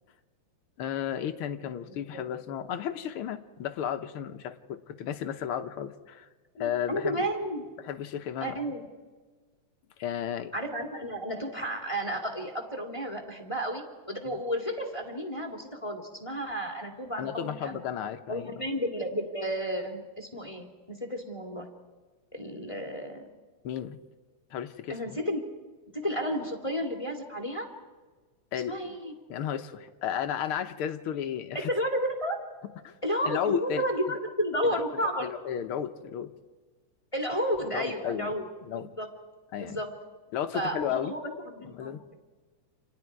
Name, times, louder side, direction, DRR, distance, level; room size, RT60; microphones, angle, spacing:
voice 1, 0.8-6.3 6.6-7.3 7.9-8.5 10.0-10.5 14.3-14.4 17.2-18.5 23.6-24.0 24.5-25.2 28.5-28.7 29.3-31.7 32.8-32.9 33.2-33.8 35.2-36.3 37.7-38.3 38.7-38.9 39.5-39.8 40.3-41.1 41.8-42.0, left 9 dB, 70° left, 7 dB, 1.3 m, -33 dB
voice 2, 1.8-2.2 6.6-7.7 8.4-8.9 10.5-17.8 18.3-21.7 22.3-23.3 24.9-25.4 25.9-27.7 28.7-29.1 31.7-32.4 33.0-35.3 37.1-38.4 38.7-39.1 39.6-39.9 40.5-42.1, equal, 10° left, 4 dB, 2.0 m, -32 dB
30.0 x 28.0 x 4.7 m, 1.4 s
omnidirectional pair, 3.7 m